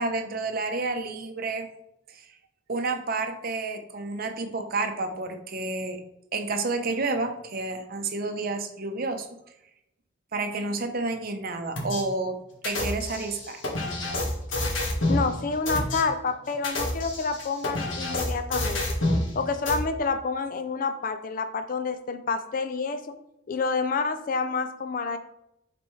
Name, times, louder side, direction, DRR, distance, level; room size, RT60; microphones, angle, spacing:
voice 1, 0.0-1.7 2.7-6.0 6.3-9.3 10.3-12.4 12.6-13.6, right 3 dB, 50° right, 6 dB, 0.7 m, -30 dB
sound 1, 11.8-12.0 12.6-15.3 15.7-16.0 16.5-19.3 19.7-19.8, left 1 dB, 80° left, 1.5 m, -28 dB
voice 2, 15.1-18.8 19.3-23.2 23.5-25.2, left 4 dB, 45° left, 9 dB, 0.4 m, -28 dB
7.9 x 4.2 x 3.2 m, 0.83 s
head